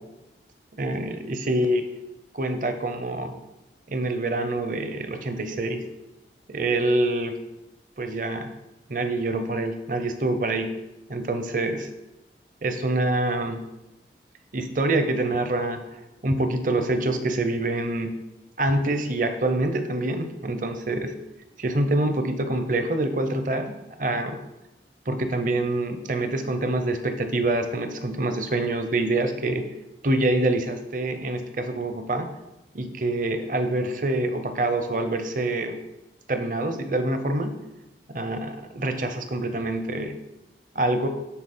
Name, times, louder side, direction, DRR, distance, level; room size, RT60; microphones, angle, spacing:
voice 1, 0.8-1.9 2.3-3.3 3.9-5.8 6.5-7.4 8.0-8.5 8.9-10.7 11.1-11.9 12.6-13.6 14.5-15.8 16.2-18.2 18.6-21.1 21.6-23.7 24.0-24.4 25.1-29.6 30.0-32.3 32.7-35.8 36.3-37.5 38.1-40.1 40.7-41.1, right 2 dB, 45° right, 8 dB, 0.7 m, -26 dB
10.0 x 4.0 x 4.3 m, 0.97 s
head